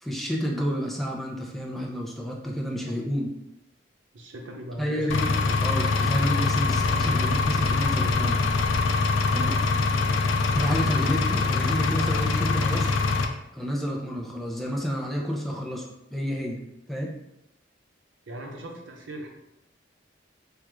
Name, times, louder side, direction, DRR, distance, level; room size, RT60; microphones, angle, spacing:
voice 1, 0.0-3.3 4.8-5.3 5.6-8.4 9.3-9.6 10.5-13.0 13.5-16.6 16.9-17.1, equal, ahead, -2 dB, 0.5 m, -30 dB
voice 2, 4.1-5.6 18.3-19.3, right 1 dB, 90° right, 0 dB, 0.7 m, -39 dB
Engine, 5.1-13.3, left 3 dB, 90° left, 0.4 m, -24 dB
3.4 x 2.4 x 3.0 m, 0.86 s
head